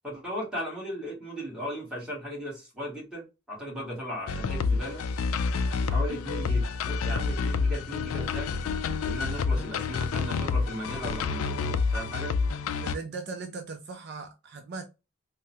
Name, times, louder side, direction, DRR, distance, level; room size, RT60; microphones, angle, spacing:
voice 1, 0.0-5.0 5.9-8.6 9.0-12.3, equal, 5° right, 1.5 m, -36 dB
sound 1, 4.3-13.0, left 4 dB, 80° left, 0.4 m, -28 dB
voice 2, 12.8-14.8, right 4 dB, 50° right, 0.5 m, -38 dB
3.5 x 2.1 x 2.7 m
head